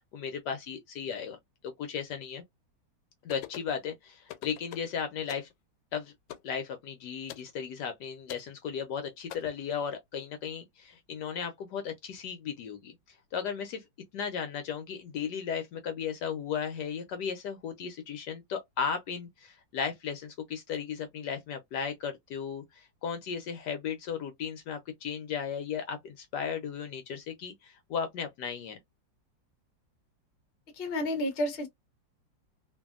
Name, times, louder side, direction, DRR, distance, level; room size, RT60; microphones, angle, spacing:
voice 1, 0.1-1.4 1.6-2.4 3.2-5.5 5.9-6.1 6.4-13.8 14.1-28.8, left 7 dB, 70° left, 1.1 m, -35 dB
sound 1, 3.3-3.7 4.3-4.9 5.3-5.5 6.3-6.5 7.3-7.5 8.3-8.5 9.3-9.4, left 12 dB, 85° left, 1.3 m, -43 dB
voice 2, 30.7-31.7, left 1 dB, 50° left, 0.7 m, -30 dB
2.8 x 2.6 x 2.3 m
omnidirectional pair, 2.1 m